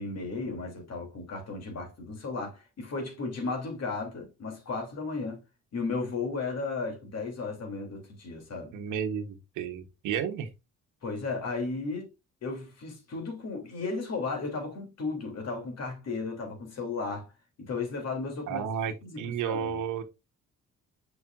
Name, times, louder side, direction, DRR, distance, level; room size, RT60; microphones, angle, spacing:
voice 1, 0.0-5.4 5.7-8.7 11.0-12.1 12.4-17.3 17.6-18.7 19.0-19.8, left 3 dB, 60° left, 3.0 m, -34 dB
voice 2, 8.7-10.5 18.5-20.0, right 8 dB, 90° right, 1.2 m, -32 dB
6.6 x 6.0 x 2.5 m
cardioid pair, 90°, 30 cm